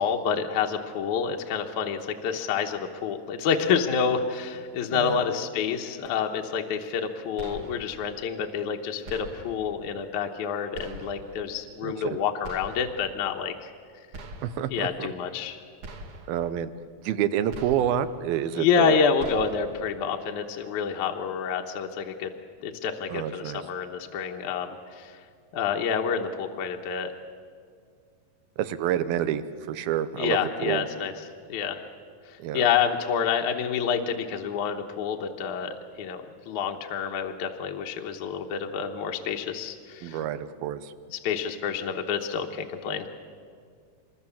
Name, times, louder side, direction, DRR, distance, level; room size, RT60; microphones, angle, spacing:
voice 1, 0.0-13.7 14.7-15.6 18.6-22.3 22.6-25.2 25.5-27.1 30.2-31.1 31.5-31.8 32.3-36.2 36.5-40.2 41.1-43.1, left 7 dB, 65° left, 3 dB, 2.3 m, -28 dB
voice 2, 4.9-5.2 11.8-12.2 14.4-14.9 16.3-16.7 17.0-19.0 23.1-23.6 28.6-30.9 32.4-32.7 40.0-40.9, right 10 dB, 85° right, 13 dB, 2.8 m, -28 dB
sound 1, 7.4-8.1 9.1-9.8 10.7-11.4 12.4-13.1 14.1-14.8 15.8-16.5 17.5-18.2 19.2-19.9, right 1 dB, 50° right, 1.9 m, -43 dB
25.5 x 22.5 x 7.2 m, 2.1 s
omnidirectional pair, 4.2 m